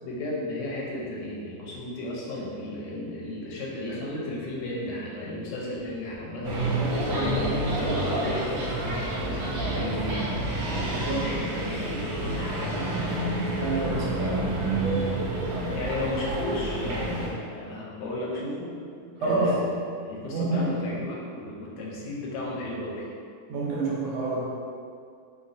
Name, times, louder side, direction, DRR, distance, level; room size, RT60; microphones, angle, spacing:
voice 1, 0.0-13.1 15.7-18.8 19.2-19.7 20.0-23.0, left 1 dB, 85° left, -4 dB, 1.3 m, -34 dB
sound 1, 6.4-17.3, right 1 dB, 70° right, 1.1 m, -28 dB
voice 2, 10.9-11.3 13.4-14.6 19.0-19.8 20.3-20.9 23.5-24.4, right 2 dB, 90° right, -4 dB, 1.3 m, -28 dB
3.1 x 2.7 x 2.5 m, 2.3 s
omnidirectional pair, 1.8 m